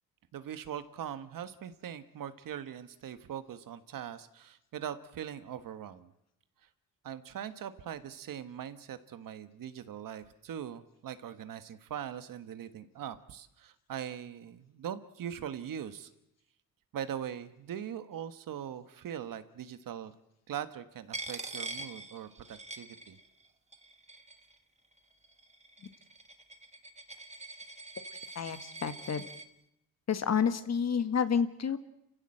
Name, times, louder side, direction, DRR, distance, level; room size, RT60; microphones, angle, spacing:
voice 1, 0.3-6.1 7.0-16.1 16.9-20.1 20.5-23.2, right 9 dB, 70° right, 11 dB, 1.5 m, -41 dB
Coin (dropping), 21.1-23.5 23.7-24.5 25.2-29.5, right 3 dB, 20° right, 1.4 m, -44 dB
voice 2, 28.4-29.2 30.1-31.8, left 7 dB, 50° left, 10 dB, 1.7 m, -29 dB
28.5 x 15.5 x 7.8 m, 0.83 s
cardioid pair, 100°, 34 cm